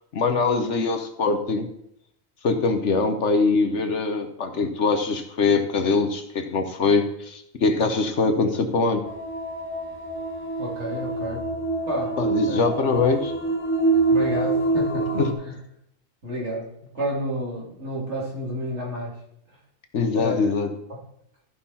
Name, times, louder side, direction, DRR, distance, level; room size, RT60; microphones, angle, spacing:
voice 1, 0.1-1.7 2.4-9.0 12.2-13.3 15.1-15.3 19.9-20.7, left 4 dB, 65° left, 6 dB, 1.3 m, -23 dB
sound 1, 9.0-15.3, right 3 dB, 10° left, 1.0 m, -25 dB
voice 2, 10.6-11.4 11.9-12.2 12.4-12.6 14.1-15.0 15.4-15.5 16.2-16.7 16.9-19.1 20.1-20.5 20.9-21.0, equal, 60° right, -3 dB, 3.3 m, -30 dB
15.0 x 5.6 x 4.2 m, 0.75 s
omnidirectional pair, 1.3 m